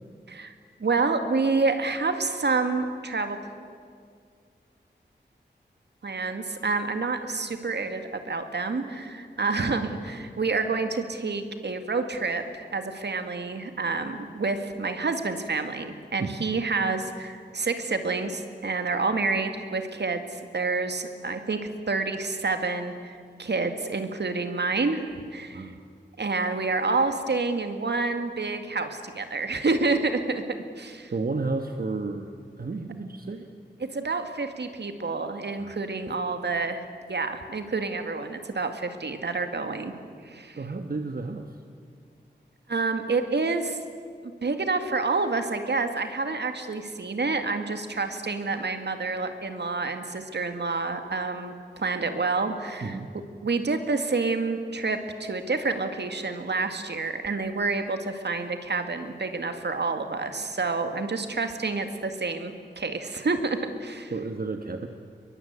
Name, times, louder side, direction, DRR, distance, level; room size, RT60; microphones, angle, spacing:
voice 1, 0.8-3.4 6.0-25.7 26.2-30.4 30.8-31.1 33.9-39.9 40.2-40.6 42.7-43.8 44.4-53.0 53.4-64.1, right 3 dB, 70° right, 7 dB, 2.2 m, -28 dB
voice 2, 31.1-32.3 32.6-33.5 35.6-35.8 40.5-41.6 52.8-53.1 64.1-64.9, right 3 dB, 55° right, 6 dB, 1.4 m, -32 dB
22.5 x 21.5 x 9.6 m, 2.2 s
wide cardioid pair, 70°, 18 cm